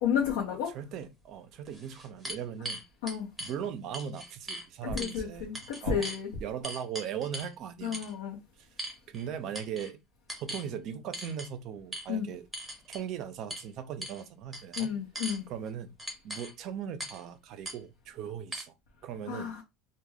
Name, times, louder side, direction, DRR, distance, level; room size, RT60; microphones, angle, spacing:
voice 1, 0.0-0.7 3.0-3.3 4.8-6.3 7.8-8.4 12.1-12.2 14.8-15.5 19.3-19.6, left 7 dB, 85° left, 0.7 m, -31 dB
voice 2, 0.7-2.8 3.4-5.5 5.8-6.1 6.4-8.1 8.6-10.0 10.4-12.5 12.9-15.0 15.5-15.9 16.2-18.7 19.0-19.6, right 8 dB, 50° right, 0.4 m, -39 dB
sound 1, 1.0-1.1 1.7-3.5 3.9-4.7 5.0-5.2 5.5-6.2 6.6-7.5 7.9-8.1 8.8-9.3 9.5-9.9 10.3-10.7 11.1-11.5 11.9-12.1 12.5-13.0 13.5-13.7 14.0-14.2 14.5-15.4 16.0-16.5 17.0-17.2 17.6-17.8 18.5-18.6, right 1 dB, 10° right, 0.8 m, -39 dB
2.2 x 2.1 x 3.3 m
supercardioid pair, 140°, 0 cm